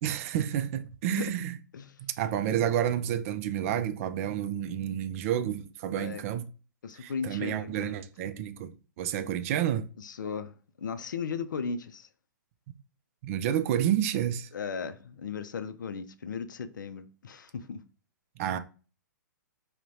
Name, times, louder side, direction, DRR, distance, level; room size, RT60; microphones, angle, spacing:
voice 1, 0.0-1.5 2.0-6.5 7.0-9.9 13.2-14.5 18.4-18.6, right 10 dB, 45° right, 0.4 m, -30 dB
voice 2, 6.8-8.0 10.0-12.1 14.5-17.8, left 6 dB, 75° left, 0.4 m, -36 dB
5.5 x 2.2 x 2.6 m
hypercardioid pair, 120°, 10 cm